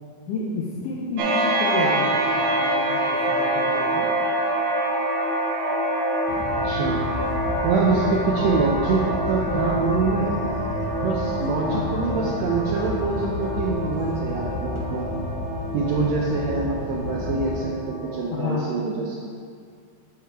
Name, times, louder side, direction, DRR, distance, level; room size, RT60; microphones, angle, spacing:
voice 1, 0.3-4.1 11.7-12.1 18.3-18.7, left 4 dB, 80° left, -3 dB, 2.2 m, -30 dB
sound 1, 1.2-18.4, right 1 dB, 70° right, 1.9 m, -26 dB
sound 2, 6.3-17.6, left 2 dB, 65° left, 1.9 m, -31 dB
voice 2, 6.6-7.0 7.6-10.3 11.0-15.1 15.7-19.2, right 4 dB, 85° right, -3 dB, 1.5 m, -25 dB
8.4 x 4.8 x 4.6 m, 2.2 s
omnidirectional pair, 3.9 m